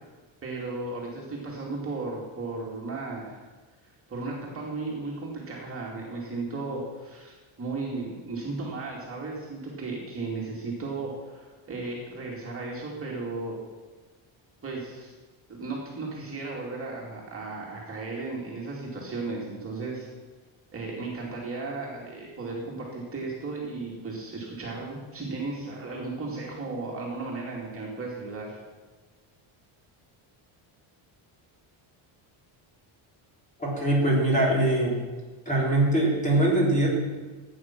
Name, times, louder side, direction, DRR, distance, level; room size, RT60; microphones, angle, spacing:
voice 1, 0.4-3.4 4.1-13.6 14.6-15.1 15.5-20.1 20.7-28.6, right 3 dB, 25° right, -3 dB, 2.5 m, -35 dB
voice 2, 33.6-35.0 35.4-36.9, right 1 dB, 15° left, -3 dB, 3.3 m, -22 dB
16.0 x 9.2 x 6.0 m, 1.3 s
cardioid pair, 180°, 50 cm